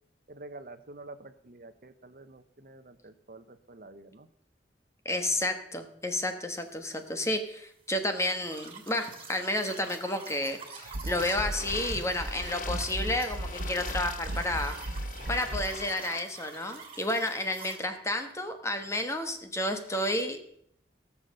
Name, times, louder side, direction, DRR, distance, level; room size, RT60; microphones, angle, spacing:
voice 1, 0.3-4.3, right 2 dB, 55° right, 10 dB, 0.9 m, -48 dB
voice 2, 5.0-14.7 15.3-20.4, left 1 dB, 15° left, 7 dB, 1.2 m, -31 dB
sound 1, 8.4-17.8, right 5 dB, 35° right, 2.8 m, -47 dB
sound 2, 10.8-15.7, right 1 dB, 75° right, 1.1 m, -36 dB
sound 3, 11.2-16.2, left 5 dB, 50° left, 0.8 m, -43 dB
17.0 x 7.2 x 6.5 m, 0.72 s
head